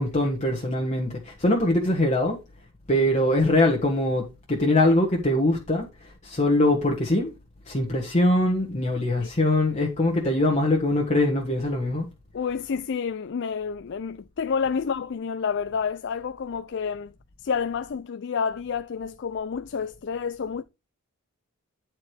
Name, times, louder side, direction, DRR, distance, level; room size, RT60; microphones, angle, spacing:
voice 1, 0.0-2.4 2.9-7.3 7.7-12.1, left 1 dB, 30° left, 1.3 m, -23 dB
voice 2, 12.3-17.1 17.4-20.6, left 6 dB, 55° left, 0.4 m, -29 dB
9.6 x 4.6 x 4.8 m
head